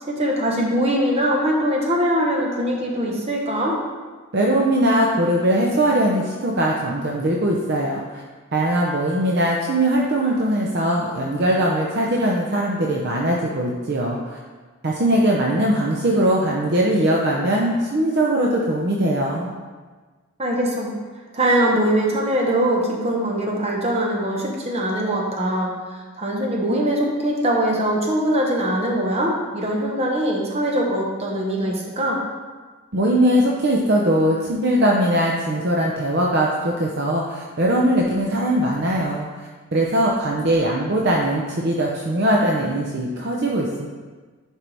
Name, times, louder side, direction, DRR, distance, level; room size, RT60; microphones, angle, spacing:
voice 1, 0.0-3.8 20.4-20.9 21.3-32.2, right 1 dB, 30° right, -1 dB, 1.1 m, -22 dB
voice 2, 4.3-8.2 8.5-14.4 14.8-19.5 32.9-39.3 39.7-43.9, right 1 dB, 50° right, -2 dB, 0.7 m, -20 dB
11.0 x 4.5 x 3.4 m, 1.4 s
head